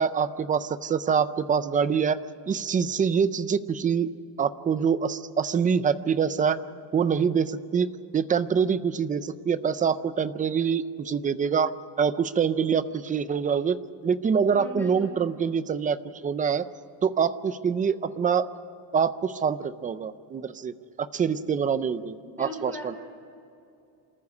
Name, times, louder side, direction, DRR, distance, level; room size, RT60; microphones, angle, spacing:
voice 1, 0.0-2.2 2.5-4.1 4.4-6.6 6.9-13.8 14.0-16.7 17.0-18.5 18.9-20.7 21.0-22.9, right 6 dB, 20° right, 14 dB, 0.4 m, -25 dB
voice 2, 14.5-15.1 22.4-23.0, left 2 dB, 5° left, -1 dB, 5.0 m, -38 dB
27.0 x 14.5 x 8.4 m, 2.6 s
cardioid pair, 165°, 45 cm